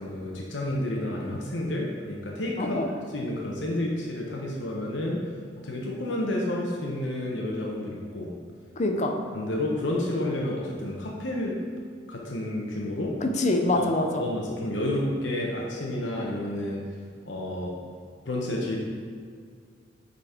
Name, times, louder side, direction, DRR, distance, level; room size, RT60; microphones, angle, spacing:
voice 1, 0.0-2.8 3.1-5.2 5.6-8.3 9.3-11.6 12.1-13.1 13.8-13.9 14.2-16.8 17.3-17.7 18.3-18.8, left 1 dB, 75° left, -2 dB, 1.0 m, -30 dB
voice 2, 2.6-2.9 8.7-9.2 13.2-14.2, left 2 dB, 40° left, 4 dB, 0.6 m, -25 dB
8.4 x 4.1 x 4.4 m, 2.1 s
head